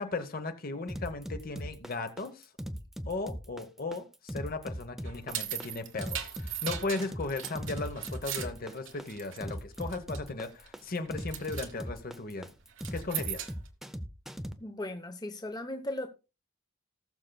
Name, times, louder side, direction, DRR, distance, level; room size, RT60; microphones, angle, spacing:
voice 1, 0.0-2.5 3.1-12.5 12.9-13.5, left 3 dB, 45° left, 1.0 m, -36 dB
sound 1, 0.9-14.5, equal, ahead, 0.5 m, -39 dB
sound 2, 5.1-9.5 9.8-10.3 10.7-10.9 11.2-11.7 12.7-13.7, right 11 dB, 60° right, 1.2 m, -38 dB
voice 2, 14.6-16.1, left 1 dB, 20° left, 0.9 m, -37 dB
19.0 x 6.6 x 2.3 m
head